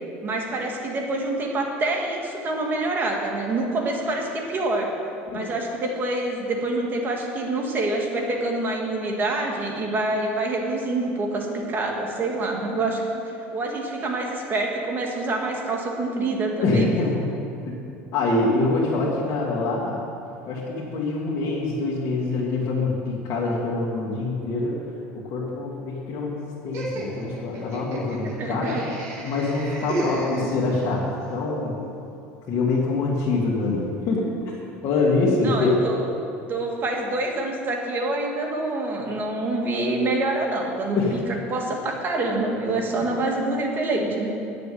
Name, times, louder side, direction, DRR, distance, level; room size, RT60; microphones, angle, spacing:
voice 1, 0.2-4.9 5.3-13.0 13.5-16.9 28.4-28.8 35.4-36.1 36.5-44.3, right 2 dB, 35° right, 1 dB, 2.0 m, -26 dB
voice 2, 16.6-17.3 17.6-17.8 18.1-20.0 20.5-24.8 25.2-28.8 29.2-31.0 31.3-31.8 32.5-34.3 34.8-35.8 41.0-41.2, left 3 dB, 50° left, -7 dB, 2.1 m, -24 dB
Laughter, 26.7-31.0, right 1 dB, 50° right, 2.6 m, -32 dB
9.3 x 7.0 x 8.4 m, 2.7 s
supercardioid pair, 115°, 6 cm